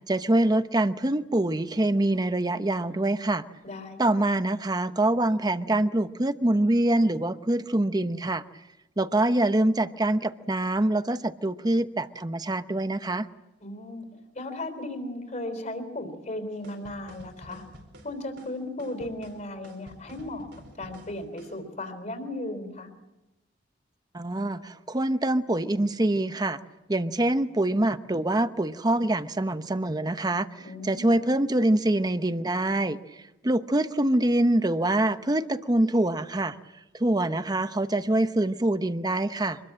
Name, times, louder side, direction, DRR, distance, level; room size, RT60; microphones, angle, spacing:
voice 1, 0.1-3.4 4.0-8.4 9.0-13.3 24.1-26.6 26.9-30.5 30.8-33.0 33.4-36.5 37.0-39.6, right 1 dB, 20° right, 11 dB, 0.8 m, -25 dB
voice 2, 3.6-4.2 13.6-14.0 14.3-17.6 18.0-20.5 20.8-22.9 30.6-31.2, left 1 dB, 40° left, 6 dB, 3.9 m, -36 dB
sound 1, 16.6-21.6, right 1 dB, 90° right, 5.0 m, -49 dB
25.5 x 21.0 x 7.6 m, 1.0 s
head